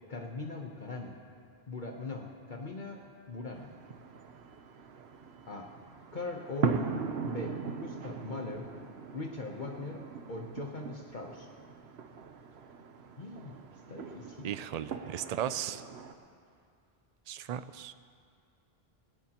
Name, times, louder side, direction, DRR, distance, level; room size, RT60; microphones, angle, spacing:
voice 1, 0.1-1.2 1.7-3.7 5.5-5.7 6.1-6.8 7.3-8.7 9.1-10.0 10.3-11.5 13.2-13.6 13.9-14.5, left 3 dB, 50° left, 1 dB, 1.1 m, -40 dB
sound 1, 3.5-16.1, right 5 dB, 85° right, 1.1 m, -39 dB
voice 2, 14.4-15.8 17.3-17.9, right 10 dB, 55° right, 13 dB, 0.5 m, -36 dB
19.0 x 17.5 x 2.9 m, 2.3 s
omnidirectional pair, 1.1 m